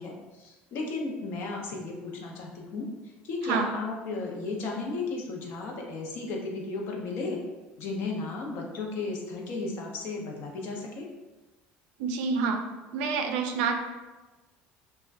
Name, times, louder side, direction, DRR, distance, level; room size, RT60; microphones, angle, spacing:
voice 1, 0.0-2.9 3.2-7.4 7.8-11.1, left 3 dB, 55° left, 0 dB, 0.6 m, -34 dB
voice 2, 12.0-12.6 12.9-13.8, right 5 dB, 85° right, 5 dB, 0.3 m, -27 dB
2.5 x 2.2 x 3.2 m, 1.2 s
cardioid pair, 135°, 4 cm